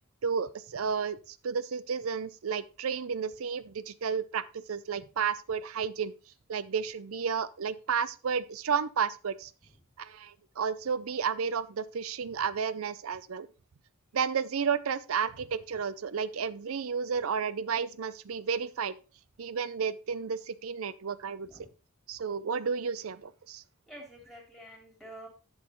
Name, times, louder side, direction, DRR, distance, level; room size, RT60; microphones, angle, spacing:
voice 1, 0.2-6.1 6.5-9.5 10.0-13.5 14.1-18.9 19.4-21.5 22.1-23.6, right 6 dB, 75° right, 16 dB, 0.5 m, -32 dB
voice 2, 23.9-25.3, right 1 dB, ahead, 0 dB, 3.1 m, -48 dB
11.0 x 6.4 x 3.0 m, 0.33 s
head